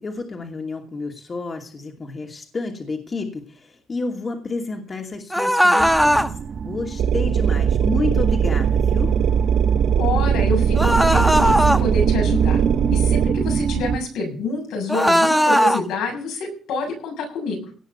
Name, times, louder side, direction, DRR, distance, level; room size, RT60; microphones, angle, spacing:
voice 1, 0.0-6.4 6.6-9.2, left 3 dB, 35° left, 2 dB, 2.6 m, -30 dB
sound 1, 5.3-6.3 10.7-11.8 14.9-15.8, equal, ahead, 1.1 m, -17 dB
sound 2, 5.8-14.0, right 6 dB, 50° right, 1.3 m, -25 dB
sound 3, 7.0-13.3, right 8 dB, 75° right, 1.0 m, -20 dB
voice 2, 10.0-12.6 12.9-17.7, left 3 dB, 90° left, 1 dB, 7.1 m, -27 dB
18.0 x 6.5 x 6.9 m, 0.42 s
cardioid pair, 90°, 0 cm